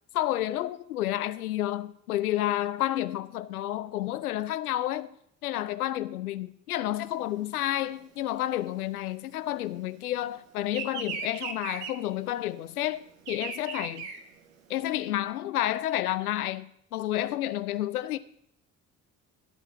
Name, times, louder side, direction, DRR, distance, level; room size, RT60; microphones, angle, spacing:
voice 1, 0.1-5.1 5.4-14.1 14.7-18.2, left 13 dB, 85° left, 0.5 m, -30 dB
Bird vocalization bird call bird song, 7.1-10.0 10.3-15.0, right 6 dB, 65° right, 1.4 m, -39 dB
12.5 x 5.5 x 7.0 m
figure-of-eight pair, 45°, 44 cm